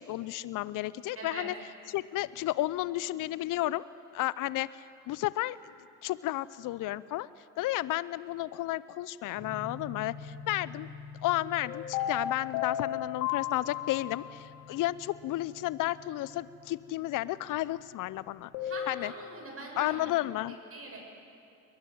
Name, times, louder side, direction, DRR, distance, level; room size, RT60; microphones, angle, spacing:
voice 1, 0.0-1.5 1.9-3.9 4.1-5.6 6.0-7.3 7.6-10.9 11.2-18.5 18.9-19.1 19.8-20.6, left 16 dB, 55° left, 19 dB, 0.7 m, -32 dB
voice 2, 1.2-1.5 18.6-20.2 20.7-21.1, right 2 dB, 35° right, 0 dB, 7.7 m, -42 dB
sound 1, 9.4-19.1, left 4 dB, ahead, 7.0 m, -49 dB
sound 2, 11.6-14.4 18.5-19.0, left 10 dB, 70° left, 2.6 m, -34 dB
22.0 x 20.5 x 9.5 m, 2.6 s
hypercardioid pair, 60°, 39 cm